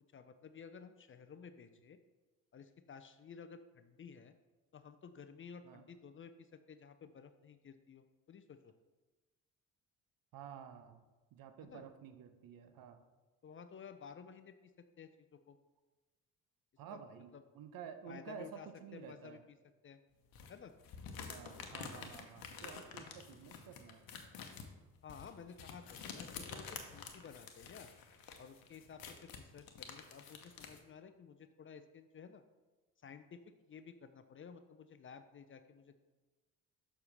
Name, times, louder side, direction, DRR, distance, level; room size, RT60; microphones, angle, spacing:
voice 1, 0.1-2.0 2.5-4.3 4.7-8.7 11.6-11.8 13.4-14.7 15.0-15.6 16.9-17.1 17.3-17.4 18.1-19.6 19.8-20.0 20.5-20.7 25.0-27.9 28.4-32.4 33.0-33.4 33.7-36.0, left 6 dB, 30° left, 10 dB, 0.5 m, -54 dB
voice 2, 10.3-11.0 11.3-13.0 16.8-19.4 21.3-24.0, right 8 dB, 60° right, 9 dB, 0.7 m, -51 dB
sound 1, 20.3-30.8, left 6 dB, 60° left, 1.0 m, -49 dB
6.7 x 5.6 x 3.3 m, 1.2 s
hypercardioid pair, 45°, 40 cm